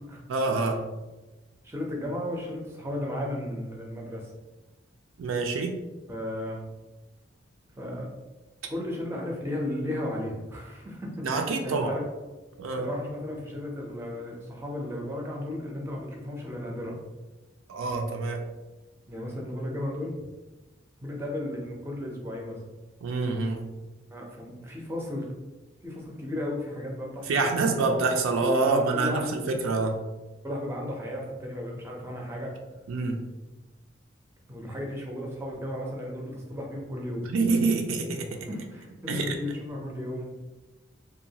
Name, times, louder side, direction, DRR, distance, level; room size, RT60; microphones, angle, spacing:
voice 1, 0.3-0.8 5.2-5.7 11.2-11.9 12.6-12.9 17.7-18.4 23.0-23.6 27.3-30.0 32.9-33.2 37.3-38.3 39.1-39.4, right 3 dB, 85° right, 4 dB, 0.4 m, -26 dB
voice 2, 1.6-4.3 6.1-6.6 7.8-8.1 8.7-12.0 12.7-17.0 19.1-20.2 21.0-22.6 24.1-25.2 25.8-27.9 28.6-29.3 30.4-32.5 33.4-33.5 34.5-37.2 38.5-40.3, left 1 dB, 15° right, -1 dB, 0.4 m, -34 dB
2.8 x 2.2 x 2.7 m, 1.1 s
head